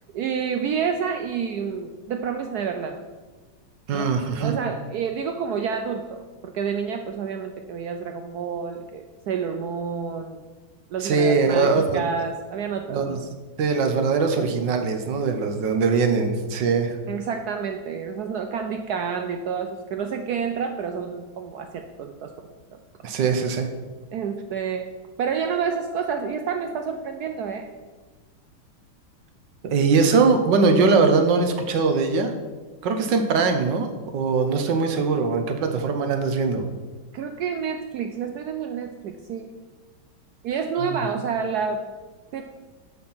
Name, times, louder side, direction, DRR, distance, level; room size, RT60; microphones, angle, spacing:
voice 1, 0.1-3.0 3.9-4.1 4.4-10.4 10.9-13.2 17.1-22.5 24.1-24.9 25.2-27.7 37.1-39.5 40.4-41.9 42.3-42.4, right 6 dB, 85° right, 6 dB, 0.8 m, -29 dB
voice 2, 3.9-4.5 11.0-12.0 12.9-13.2 13.6-17.0 23.0-23.7 29.6-32.3 32.8-33.9 34.1-36.6 40.8-41.0, right 4 dB, 65° right, 6 dB, 1.5 m, -21 dB
11.5 x 4.4 x 5.6 m, 1.3 s
omnidirectional pair, 2.3 m